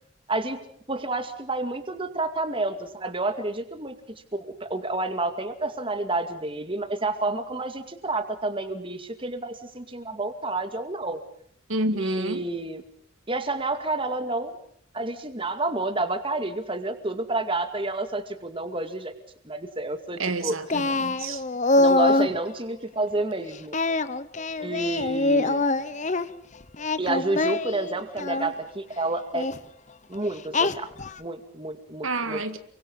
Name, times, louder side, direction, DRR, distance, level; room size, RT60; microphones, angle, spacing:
voice 1, 0.3-0.6 0.9-3.9 4.3-11.2 11.9-12.8 13.3-14.6 14.9-19.1 19.4-20.6 21.8-23.8 24.6-25.6 27.0-29.5 30.1-30.9 31.2-32.4, right 2 dB, 25° right, 2.3 m, -29 dB
voice 2, 11.7-12.4 20.2-21.4 32.0-32.6, right 2 dB, 85° right, 2.0 m, -29 dB
Singing, 20.7-22.4 23.7-26.3 26.7-28.5 29.3-29.6 30.5-31.2, left 2 dB, 35° left, 1.0 m, -24 dB
29.5 x 24.0 x 5.5 m
head